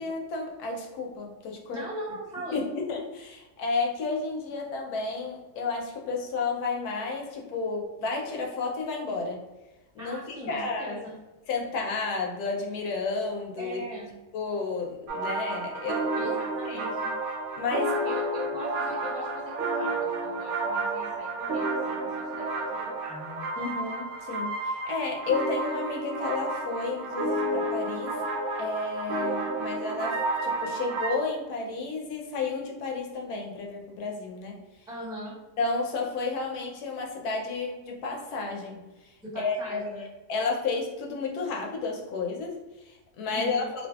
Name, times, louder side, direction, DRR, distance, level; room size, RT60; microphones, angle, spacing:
voice 1, 0.0-1.9 2.5-9.4 9.9-10.2 10.5-11.0 11.5-13.8 14.3-16.4 16.6-16.8 17.6-18.0 23.6-28.2 28.6-34.6 35.6-43.9, left 4 dB, 80° left, 0 dB, 1.1 m, -32 dB
voice 2, 1.7-2.6 10.0-11.2 13.6-14.1 16.1-17.1 18.0-23.5 34.9-35.4 39.2-40.0 43.3-43.7, equal, 5° right, -8 dB, 0.4 m, -40 dB
sound 1, 15.1-31.1, right 2 dB, 70° right, 0.7 m, -31 dB
2.6 x 2.5 x 2.3 m, 1.1 s
omnidirectional pair, 1.6 m